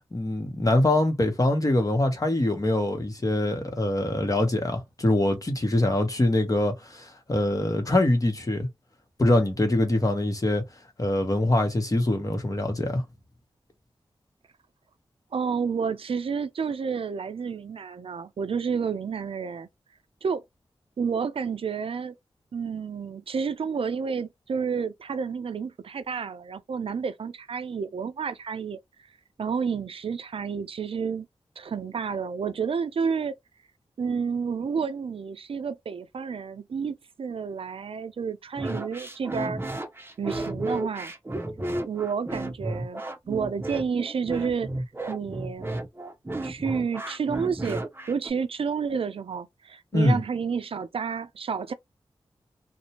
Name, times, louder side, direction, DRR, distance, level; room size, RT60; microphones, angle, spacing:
voice 1, 0.1-8.7 9.2-10.6 11.0-13.0 49.9-50.2, left 1 dB, 35° left, 1.0 m, -24 dB
voice 2, 15.3-19.7 20.2-20.4 21.0-22.2 22.5-28.8 29.4-31.3 31.6-33.4 34.0-39.6 40.2-41.1 41.9-44.7 45.1-45.7 46.4-51.7, right 6 dB, 65° right, 0.5 m, -30 dB
sound 1, 38.6-48.3, right 1 dB, 25° right, 0.7 m, -33 dB
2.5 x 2.1 x 2.9 m
cardioid pair, 45°, 10 cm